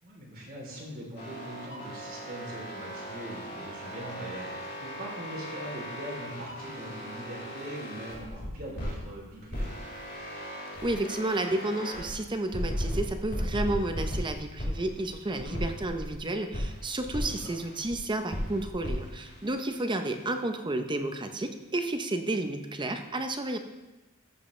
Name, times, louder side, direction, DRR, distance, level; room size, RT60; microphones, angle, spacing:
voice 1, 0.0-9.7 15.3-15.6 17.3-17.5, equal, 45° right, -3 dB, 3.3 m, -42 dB
sound 1, 1.2-9.0 9.5-12.1 12.5-16.2 16.5-18.0 18.3-20.4, equal, 55° left, 3.8 m, -37 dB
voice 2, 10.8-23.6, right 2 dB, 20° right, 6 dB, 0.7 m, -31 dB
14.0 x 7.5 x 3.3 m, 1.1 s
head